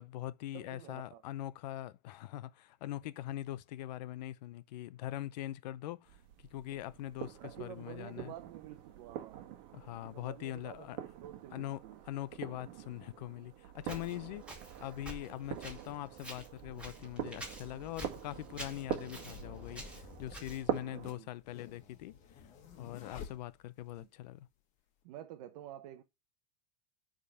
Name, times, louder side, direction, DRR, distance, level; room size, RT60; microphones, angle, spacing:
voice 1, 0.0-6.2 6.5-8.3 9.7-11.0 11.5-22.1 22.8-24.5, left 14 dB, 75° left, 0.7 m, -42 dB
voice 2, 0.5-1.2 7.4-9.5 10.0-12.0 15.5-15.7 21.0-21.3 24.0-24.1 25.0-26.0, right 12 dB, 65° right, 0.9 m, -49 dB
sound 1, 6.1-21.2, right 11 dB, 50° right, 1.7 m, -45 dB
Walk footsteps, 13.8-20.8, right 1 dB, 5° right, 2.5 m, -49 dB
sound 2, 16.6-16.7 17.6-24.0, left 7 dB, 35° left, 1.6 m, -53 dB
9.9 x 3.8 x 5.6 m
supercardioid pair, 160°, 21 cm